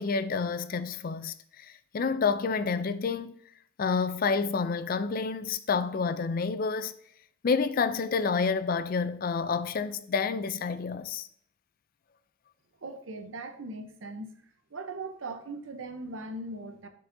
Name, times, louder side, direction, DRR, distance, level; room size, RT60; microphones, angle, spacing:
voice 1, 0.0-3.4 3.8-6.9 7.4-11.3, left 5 dB, 45° left, 0.4 m, -29 dB
voice 2, 12.8-14.4 14.7-16.9, right 2 dB, 90° right, 0.8 m, -39 dB
10.0 x 4.8 x 2.7 m
head